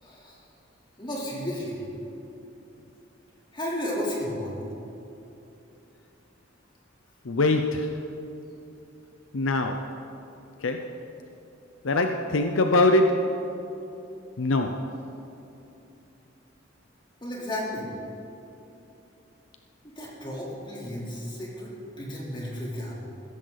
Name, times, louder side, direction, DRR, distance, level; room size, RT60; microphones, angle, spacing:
voice 1, 0.0-0.4 1.0-1.8 3.5-4.6 17.2-17.9 20.0-21.7 22.0-23.0, equal, 25° left, -5 dB, 3.5 m, -33 dB
voice 2, 7.3-7.9 9.3-9.9 10.6-10.9 11.8-13.4 14.4-14.8, left 2 dB, 75° left, 5 dB, 0.7 m, -23 dB
15.5 x 14.0 x 4.1 m, 2.9 s
head